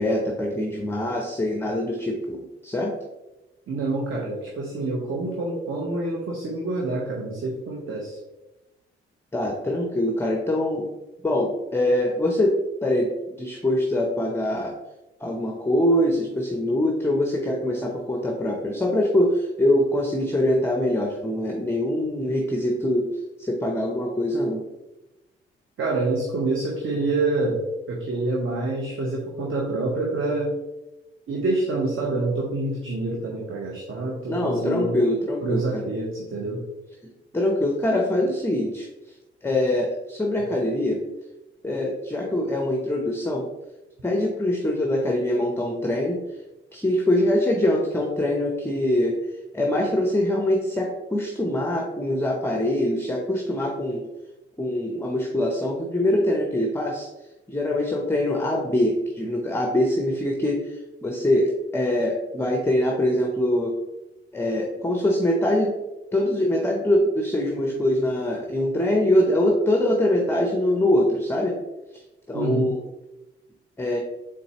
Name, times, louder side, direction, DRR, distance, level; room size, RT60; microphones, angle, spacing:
voice 1, 0.0-2.9 9.3-10.9 11.2-14.7 15.2-23.1 23.4-24.6 34.3-35.8 37.3-38.9 39.4-41.0 41.6-43.5 44.0-46.2 46.7-49.2 49.5-54.1 54.6-57.1 57.5-63.8 64.3-65.7 66.1-71.6 71.9-72.0 72.3-72.8 73.8-74.0, left 1 dB, 10° left, 0 dB, 0.6 m, -23 dB
voice 2, 3.7-8.2 25.8-30.6 31.3-35.0 35.4-36.6 72.3-72.7, right 2 dB, 45° right, -2 dB, 0.9 m, -27 dB
3.9 x 3.5 x 2.9 m, 1.0 s
hypercardioid pair, 40°, 30 cm